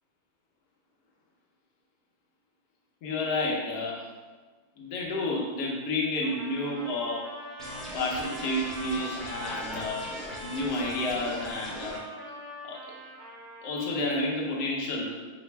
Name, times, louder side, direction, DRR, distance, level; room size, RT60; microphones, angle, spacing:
voice 1, 3.0-4.1 4.8-7.3 7.9-10.0 10.4-12.0 12.6-12.8 13.6-15.2, left 2 dB, 85° left, -2 dB, 1.4 m, -30 dB
Trumpet, 6.2-13.9, left 1 dB, 45° right, 1.1 m, -42 dB
sound 1, 7.6-12.0, equal, ahead, 0.4 m, -41 dB
4.8 x 2.1 x 4.4 m, 1.3 s
omnidirectional pair, 1.7 m